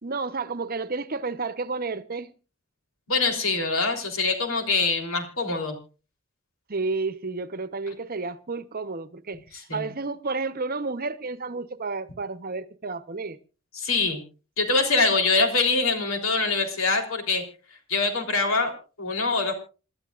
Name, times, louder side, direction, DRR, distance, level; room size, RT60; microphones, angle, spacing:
voice 1, 0.0-2.3 6.7-9.4 9.7-13.4, right 3 dB, 45° right, 0.9 m, -31 dB
voice 2, 3.1-5.8 9.7-9.9 13.7-14.2 14.6-17.4 17.9-19.5, left 3 dB, 80° left, 3.6 m, -24 dB
28.0 x 12.5 x 2.5 m
head